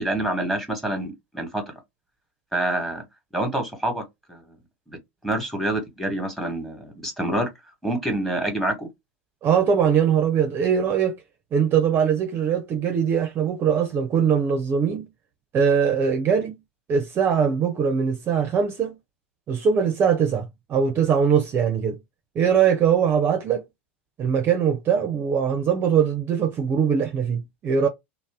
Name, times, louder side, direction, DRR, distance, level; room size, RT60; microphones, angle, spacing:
voice 1, 0.0-1.6 2.5-3.0 3.3-4.4 4.9-5.0 5.2-7.5 7.8-8.9, right 1 dB, ahead, 1.2 m, -27 dB
voice 2, 9.4-11.2 11.5-15.0 15.5-16.6 16.9-18.9 19.5-22.0 22.4-23.6 24.2-27.9, right 7 dB, 35° right, 0.5 m, -21 dB
2.6 x 2.0 x 3.3 m
hypercardioid pair, 95°, 7 cm